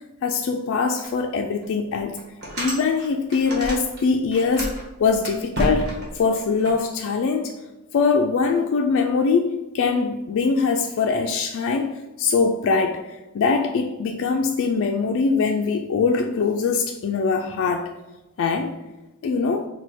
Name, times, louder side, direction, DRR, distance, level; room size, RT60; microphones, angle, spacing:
voice 1, 0.2-2.2 2.6-7.5 7.9-17.9 18.4-18.8 19.2-19.7, left 4 dB, 60° left, 3 dB, 0.3 m, -22 dB
sound 1, 1.0-1.1 1.6-1.7 2.2-4.0 4.3-6.7, equal, 50° right, 1.3 m, -30 dB
4.1 x 2.2 x 4.3 m, 1.0 s
head